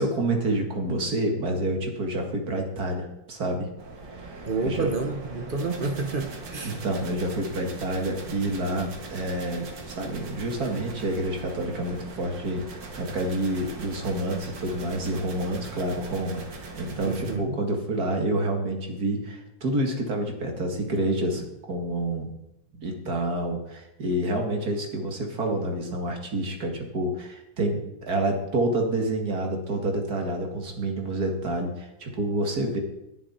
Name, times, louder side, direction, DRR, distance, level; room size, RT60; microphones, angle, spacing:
voice 1, 0.0-3.7 4.2-4.3 4.6-4.9 6.6-22.3 22.7-32.8, right 1 dB, 55° right, 2 dB, 2.5 m, -28 dB
sound 1, 3.8-17.4, right 3 dB, 85° right, 2.4 m, -41 dB
voice 2, 4.5-6.8 17.0-17.6, right 3 dB, 35° right, 6 dB, 1.0 m, -30 dB
21.0 x 7.0 x 4.3 m, 0.88 s
omnidirectional pair, 1.9 m